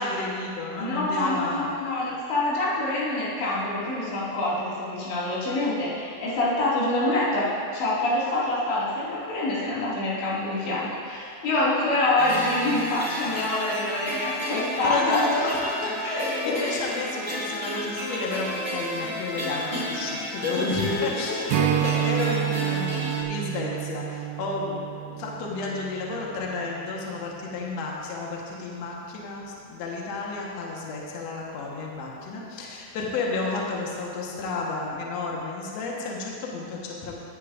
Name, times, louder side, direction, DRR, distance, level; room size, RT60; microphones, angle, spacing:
voice 1, 0.0-1.7 14.8-23.0 23.3-37.2, left 3 dB, 65° left, -3 dB, 1.8 m, -31 dB
voice 2, 0.8-15.7 16.0-16.8 19.7-20.0 21.2-21.6, left 2 dB, 85° left, -8 dB, 4.7 m, -26 dB
sound 1, 12.2-23.2, equal, 5° right, 1.7 m, -32 dB
Strum, 21.5-26.9, right 14 dB, 80° right, 2.5 m, -29 dB
17.0 x 9.7 x 2.6 m, 2.5 s
omnidirectional pair, 4.9 m